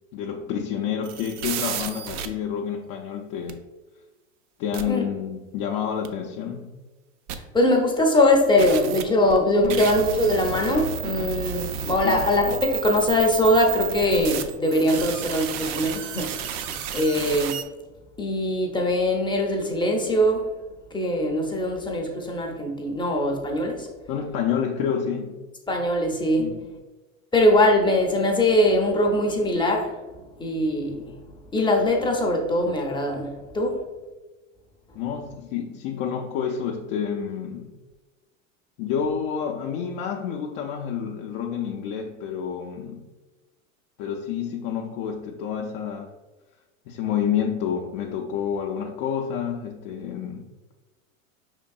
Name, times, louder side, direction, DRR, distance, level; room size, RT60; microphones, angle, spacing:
voice 1, 0.1-3.6 4.6-6.7 9.6-9.8 12.0-12.2 24.1-25.4 26.4-26.6 34.9-37.8 38.8-43.1 44.0-46.1 46.9-50.5, left 8 dB, 60° left, 0 dB, 0.6 m, -29 dB
sound 1, 1.0-2.3 3.5-3.6 4.7-4.8 6.0-6.1 7.3-7.4 8.6-17.6, right 8 dB, 60° right, 0.5 m, -32 dB
voice 2, 7.5-17.5 18.2-20.5 20.9-23.9 25.7-26.5 27.3-29.9 30.4-31.1 31.5-33.8, left 1 dB, 10° left, 1 dB, 0.6 m, -22 dB
5.1 x 3.7 x 2.3 m, 1.2 s
hypercardioid pair, 95°, 40 cm